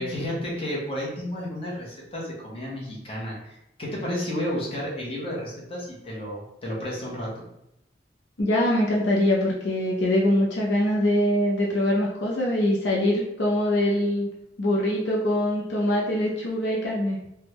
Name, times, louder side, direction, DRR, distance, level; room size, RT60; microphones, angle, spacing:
voice 1, 0.0-7.4, equal, 30° left, -4 dB, 0.9 m, -32 dB
voice 2, 8.4-14.3 14.6-17.2, left 1 dB, 70° left, -3 dB, 0.6 m, -23 dB
3.5 x 2.2 x 2.9 m, 0.81 s
head